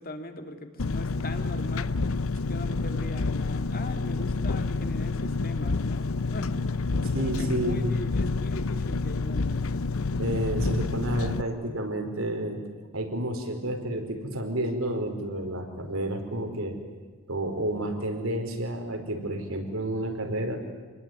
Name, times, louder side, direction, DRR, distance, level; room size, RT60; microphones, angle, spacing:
voice 1, 0.0-2.0 2.5-6.6 6.9-9.7, left 1 dB, 40° left, 6 dB, 2.7 m, -40 dB
Engine, 0.8-11.4, left 3 dB, 75° left, 0.7 m, -28 dB
voice 2, 7.1-7.9 10.2-12.6 12.9-16.8 17.3-20.6, right 1 dB, 70° right, 4 dB, 5.0 m, -30 dB
28.0 x 20.5 x 9.7 m, 1.4 s
head